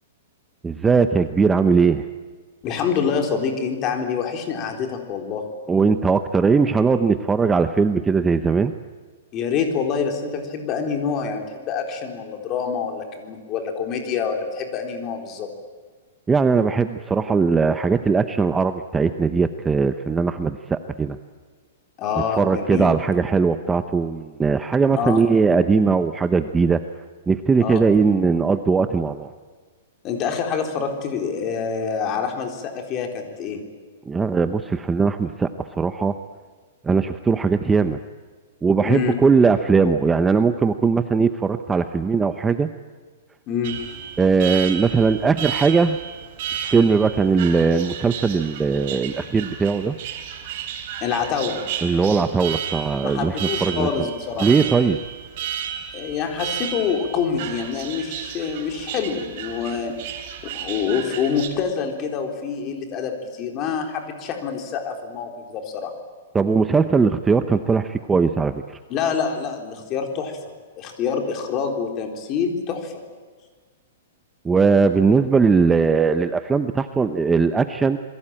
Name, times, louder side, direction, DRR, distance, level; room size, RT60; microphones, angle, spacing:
voice 1, 0.6-2.0 5.7-8.7 16.3-21.2 22.3-26.8 27.3-29.3 34.1-36.2 36.8-38.0 38.6-42.7 44.2-46.0 46.5-50.0 51.8-53.9 54.4-55.0 66.3-68.8 74.4-78.0, right 5 dB, 10° right, 9 dB, 0.7 m, -19 dB
voice 2, 2.6-5.4 9.3-15.5 22.0-22.9 25.0-25.2 27.6-27.8 30.0-33.6 38.8-39.1 43.5-43.8 51.0-51.6 53.0-54.5 55.9-60.0 60.5-65.9 68.9-70.4 70.8-72.9, left 6 dB, 25° left, 4 dB, 3.9 m, -26 dB
Alarm, 43.6-61.5, right 9 dB, 45° right, 4.1 m, -33 dB
28.0 x 22.0 x 8.8 m, 1.5 s
hypercardioid pair, 165°, 0 cm